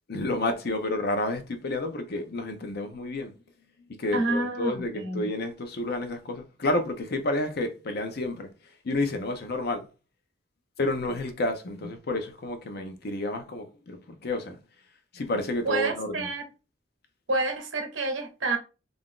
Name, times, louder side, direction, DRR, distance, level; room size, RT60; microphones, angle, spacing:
voice 1, 0.1-3.4 4.0-8.5 8.8-9.9 10.8-14.6 15.1-16.3, left 2 dB, 55° left, 0.6 m, -30 dB
voice 2, 4.1-5.3 15.6-16.4 17.3-18.6, right 2 dB, 80° right, 0.8 m, -28 dB
2.5 x 2.4 x 3.6 m
head